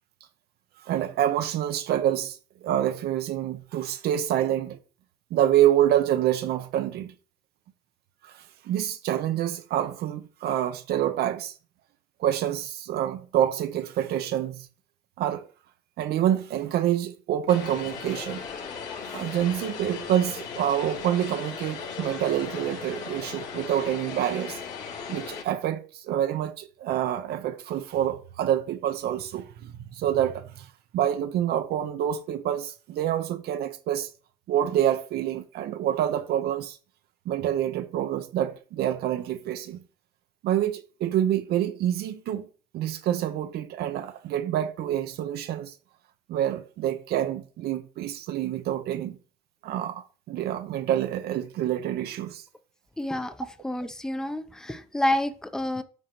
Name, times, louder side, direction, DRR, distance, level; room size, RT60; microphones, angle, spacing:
voice 1, 0.8-4.8 5.3-7.1 8.2-11.6 12.2-14.7 15.2-15.4 16.0-18.5 19.1-24.6 25.1-30.7 30.9-34.1 34.5-36.8 37.3-39.8 40.4-42.5 42.7-45.7 46.3-49.2 49.6-52.4, right 11 dB, 70° right, 0.7 m, -27 dB
Vehicle, 17.5-25.4, left 6 dB, 80° left, 3.5 m, -37 dB
voice 2, 53.0-53.3 53.6-55.8, left 1 dB, 5° left, 0.7 m, -28 dB
12.5 x 4.4 x 3.0 m
cardioid pair, 110°, 17 cm